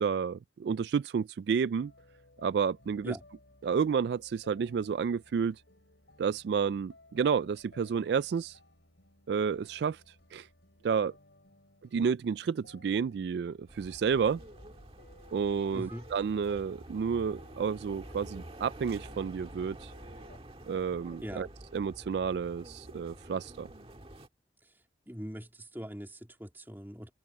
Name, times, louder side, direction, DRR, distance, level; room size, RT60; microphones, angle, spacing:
voice 1, 0.0-1.9 2.4-3.2 3.6-5.6 6.2-8.6 9.3-10.0 10.3-10.5 10.8-11.1 11.9-14.4 15.3-19.9 20.7-21.5 21.7-23.7, right 6 dB, 70° right, 0.3 m, -30 dB
sound 1, 1.8-20.4, left 1 dB, 80° left, 5.5 m, -59 dB
sound 2, 13.7-24.3, right 1 dB, 30° right, 1.8 m, -49 dB
voice 2, 15.7-16.1 21.2-21.5 24.6-24.7 25.1-27.1, equal, 10° right, 3.1 m, -41 dB
open air
head